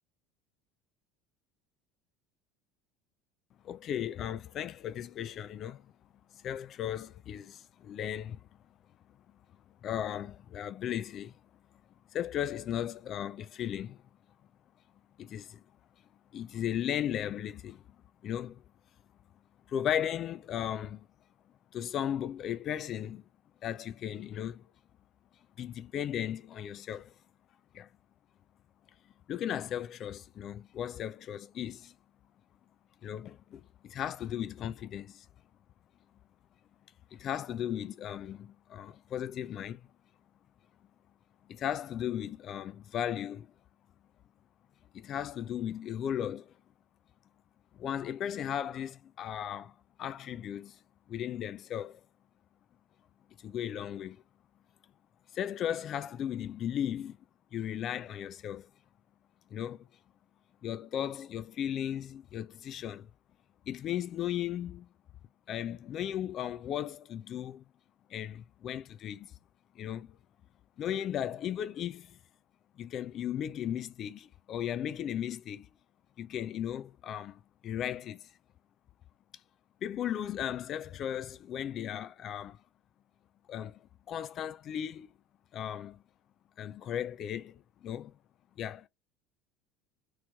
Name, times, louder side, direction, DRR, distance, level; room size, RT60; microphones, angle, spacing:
voice 1, 3.6-5.9 6.3-8.5 9.8-11.3 12.1-14.0 15.2-15.6 16.3-17.8 18.2-18.6 19.7-21.1 21.7-23.2 23.6-24.7 25.6-27.1 27.7-27.9 29.3-31.9 33.0-35.3 37.1-39.9 41.5-43.5 44.9-46.5 47.7-50.8 51.1-52.0 53.4-54.2 55.3-57.2 57.5-58.7 59.5-59.9 60.6-63.1 63.7-64.9 65.5-67.6 68.1-69.3 69.8-70.2 70.8-72.2 72.8-75.7 76.2-78.3 79.8-82.6 83.5-83.8 84.1-85.1 85.5-86.0 86.6-88.1 88.6-88.9, left 10 dB, 40° left, 0.4 m, -36 dB
3.1 x 3.0 x 2.3 m
figure-of-eight pair, 65°, 0 cm